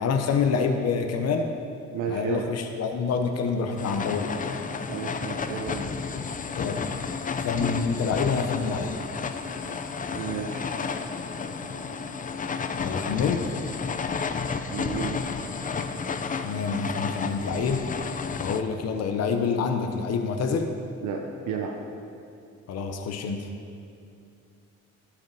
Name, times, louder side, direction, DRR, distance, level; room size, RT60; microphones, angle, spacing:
voice 1, 0.0-1.5 2.1-4.6 6.5-6.8 7.4-9.0 12.8-13.5 16.4-17.8 18.4-20.7 22.7-23.5, left 5 dB, 55° left, 5 dB, 0.8 m, -27 dB
voice 2, 1.9-2.5 4.9-5.9 10.1-10.8 11.7-12.0 14.7-15.3 21.0-21.8, right 6 dB, 75° right, 1 dB, 0.8 m, -33 dB
sound 1, 3.8-18.6, left 5 dB, 25° left, 0.5 m, -32 dB
12.0 x 5.0 x 5.3 m, 2.5 s
cardioid pair, 90°, 30 cm